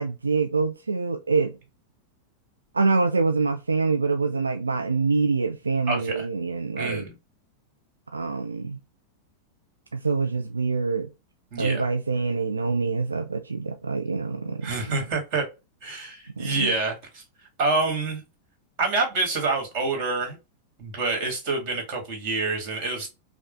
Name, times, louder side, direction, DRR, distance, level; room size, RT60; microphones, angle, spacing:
voice 1, 0.0-1.6 2.7-7.0 8.1-8.8 9.9-11.1 11.6-14.7 16.4-16.7, right 4 dB, 75° right, 0.3 m, -25 dB
voice 2, 5.9-6.3 6.8-7.1 11.5-11.8 14.6-15.4 15.8-17.2 17.6-18.2 18.8-20.4 20.8-23.1, right 3 dB, 45° right, 1.8 m, -27 dB
5.3 x 2.3 x 2.4 m
figure-of-eight pair, 90°, 0 cm